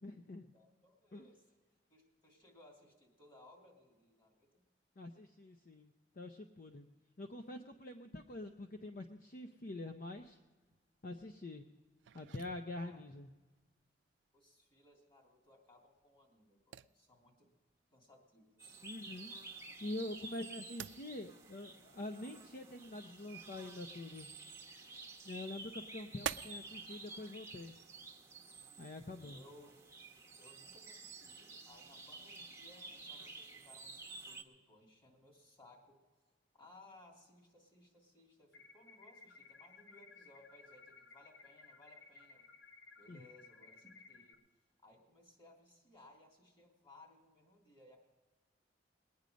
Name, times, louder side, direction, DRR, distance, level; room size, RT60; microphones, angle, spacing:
voice 1, 0.0-0.5 1.1-1.3 5.0-6.9 7.2-10.4 11.0-11.7 12.1-13.3 18.8-19.3 19.8-24.3 25.3-27.8 28.8-29.4 43.1-43.2, left 2 dB, 50° left, 6 dB, 0.6 m, -46 dB
voice 2, 0.5-1.6 1.9-4.6 12.7-13.0 14.3-17.5 17.9-18.9 29.2-29.7 30.4-36.0 36.6-42.5 43.0-44.4 44.8-48.0, left 1 dB, 30° left, 0 dB, 3.1 m, -62 dB
sound 1, 10.1-26.8, right 9 dB, 85° right, 0.3 m, -51 dB
sound 2, 18.6-34.4, right 3 dB, 15° right, 1.0 m, -52 dB
sound 3, 38.5-44.3, left 4 dB, 90° left, 1.1 m, -59 dB
20.5 x 9.6 x 5.1 m, 1.3 s
head